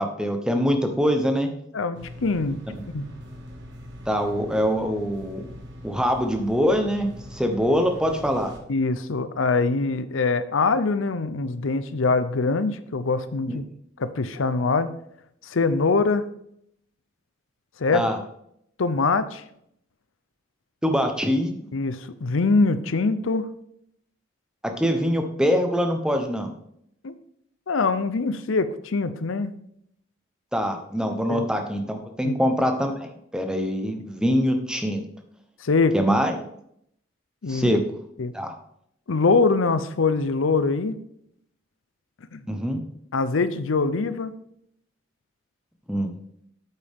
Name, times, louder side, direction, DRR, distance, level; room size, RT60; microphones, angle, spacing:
voice 1, 0.0-1.5 4.1-5.4 5.8-8.5 13.5-13.6 17.9-18.2 20.8-21.7 24.6-26.5 30.5-35.0 35.9-36.4 37.5-37.8 38.3-38.5 42.5-42.8 45.9-46.1, equal, 5° right, 5 dB, 0.8 m, -24 dB
voice 2, 1.7-2.6 2.9-3.0 8.7-13.6 14.0-14.9 15.4-16.3 17.8-18.0 18.8-19.4 21.7-23.5 27.0-27.1 27.7-29.5 31.3-31.4 32.2-32.3 35.6-35.9 37.4-37.7 38.2-38.3 39.1-41.0 42.3-42.4 43.1-44.3, left 3 dB, 85° left, 13 dB, 0.6 m, -23 dB
sound 1, 1.9-8.6, equal, 65° right, 1.7 m, -42 dB
8.5 x 8.2 x 3.6 m, 0.72 s
head